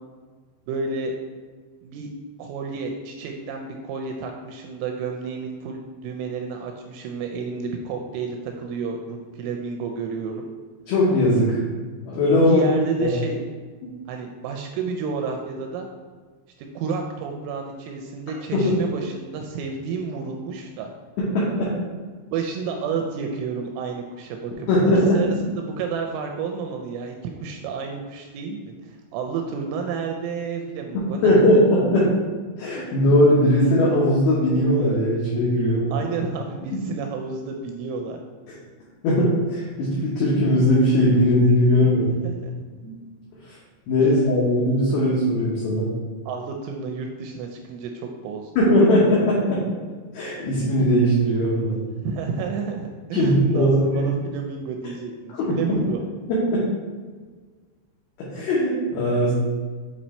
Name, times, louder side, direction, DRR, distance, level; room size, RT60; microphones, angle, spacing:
voice 1, 0.7-1.1 1.8-2.1 2.4-10.5 12.4-13.4 14.1-15.9 16.6-20.9 22.3-31.4 35.9-38.2 41.8-42.5 46.3-48.5 52.0-56.0, right 5 dB, 85° right, 3 dB, 2.8 m, -31 dB
voice 2, 10.9-11.6 12.1-12.6 13.0-13.1 18.5-18.7 21.2-21.7 24.7-25.2 31.2-32.2 32.6-36.0 39.0-42.0 42.8-42.9 43.9-45.9 48.6-49.6 50.1-51.8 53.1-54.0 55.4-55.8 56.3-56.7 58.2-59.3, left 1 dB, 80° left, -6 dB, 2.2 m, -19 dB
8.3 x 2.8 x 4.2 m, 1.5 s
omnidirectional pair, 5.8 m